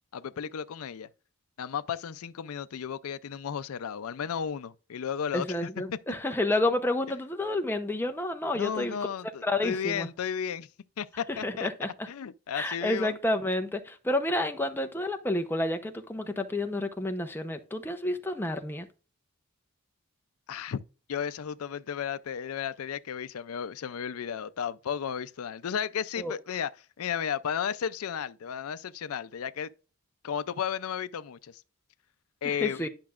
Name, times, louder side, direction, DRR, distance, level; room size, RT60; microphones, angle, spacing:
voice 1, 0.1-1.1 1.6-5.6 5.9-6.0 8.5-10.7 11.0-11.7 12.1-13.1 20.5-20.8 21.1-29.7 30.2-31.6 32.4-32.9, left 8 dB, 85° left, 0.4 m, -34 dB
voice 2, 5.3-9.0 9.4-10.1 11.3-12.1 12.5-18.9 26.2-26.3 32.4-32.9, left 1 dB, 10° left, 0.7 m, -30 dB
10.5 x 5.8 x 2.4 m
head